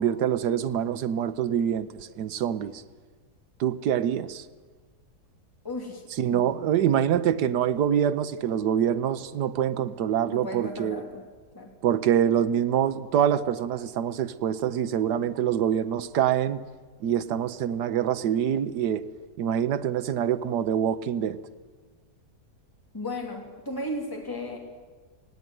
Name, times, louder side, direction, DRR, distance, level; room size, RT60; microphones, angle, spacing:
voice 1, 0.0-2.8 3.6-4.4 6.2-11.0 11.8-16.6 17.0-19.0 19.4-21.4, right 9 dB, 85° right, 1.4 m, -25 dB
voice 2, 5.6-6.0 6.3-6.4 10.3-11.2 11.5-11.7 22.9-24.6, left 1 dB, 10° left, 2.9 m, -35 dB
19.0 x 16.5 x 9.3 m
omnidirectional pair, 1.7 m